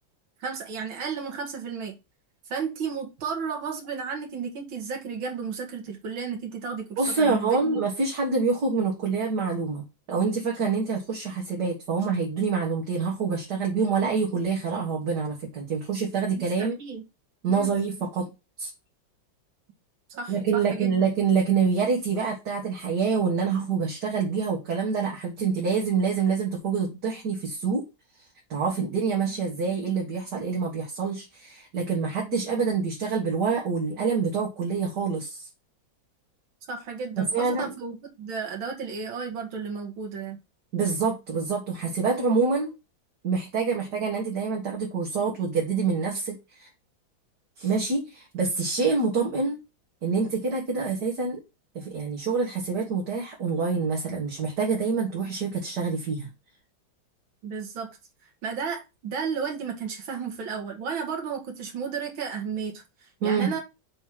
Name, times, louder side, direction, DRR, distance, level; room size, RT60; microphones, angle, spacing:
voice 1, 0.4-2.0 2.5-7.8 16.3-17.0 17.5-17.7 20.1-20.9 36.7-40.4 57.4-57.9 58.4-62.8 63.2-63.6, right 6 dB, 75° right, 2 dB, 2.3 m, -33 dB
voice 2, 7.0-16.8 17.4-18.3 18.6-18.7 20.3-27.8 28.5-35.5 37.2-37.7 40.7-42.7 43.2-46.7 47.6-49.6 50.0-51.4 51.7-56.3 63.2-63.5, right 5 dB, 55° right, -2 dB, 2.3 m, -26 dB
6.3 x 3.4 x 5.9 m, 0.26 s
omnidirectional pair, 2.2 m